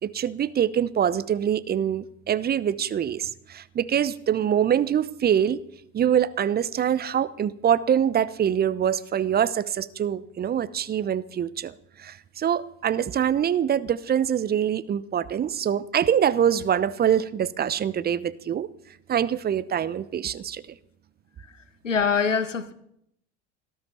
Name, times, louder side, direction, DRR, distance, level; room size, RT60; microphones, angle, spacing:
voice 1, 0.0-5.6 5.9-18.7 19.1-20.6, right 9 dB, 25° right, 0.8 m, -24 dB
voice 2, 21.8-22.7, left 6 dB, 85° left, 1.3 m, -23 dB
18.5 x 12.0 x 5.8 m
figure-of-eight pair, 75°, 36 cm